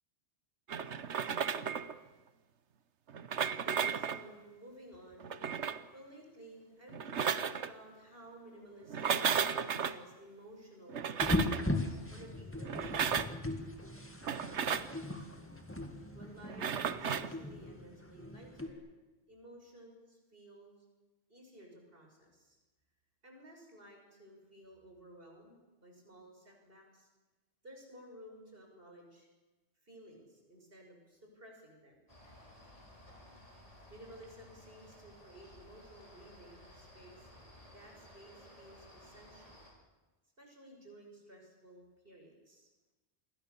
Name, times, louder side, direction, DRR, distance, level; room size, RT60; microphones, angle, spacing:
sound 1, 0.7-1.9 3.1-4.2 5.2-5.9 6.9-7.7 8.9-10.0 10.9-11.6 12.6-13.4 14.2-14.9 16.5-17.3, right 7 dB, 80° right, 1.3 m, -34 dB
voice 1, 3.5-13.2 16.1-18.8 19.3-20.7 21.3-22.6 23.2-27.1 27.6-29.3 29.8-32.0 33.9-37.3 37.7-39.6 40.4-42.7, right 1 dB, 55° right, 1 dB, 6.5 m, -55 dB
sound 2, 11.2-18.7, left 1 dB, 10° left, 2.2 m, -38 dB
sound 3, 32.1-39.7, left 1 dB, 30° left, 6.2 m, -56 dB
28.0 x 22.5 x 7.0 m, 1.2 s
omnidirectional pair, 1.2 m